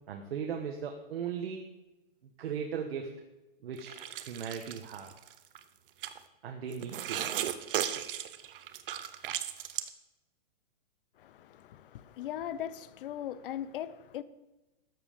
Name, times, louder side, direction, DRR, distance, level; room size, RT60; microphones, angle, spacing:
voice 1, 0.1-1.6 2.4-3.3 3.6-5.1 6.4-7.3, right 7 dB, 80° right, 1.4 m, -38 dB
sound 1, 3.8-5.6 6.0-6.2 6.7-9.9, right 11 dB, 65° right, 0.9 m, -36 dB
voice 2, 11.2-14.2, left 11 dB, 60° left, 0.8 m, -39 dB
13.0 x 7.8 x 5.1 m
hypercardioid pair, 160°, 30 cm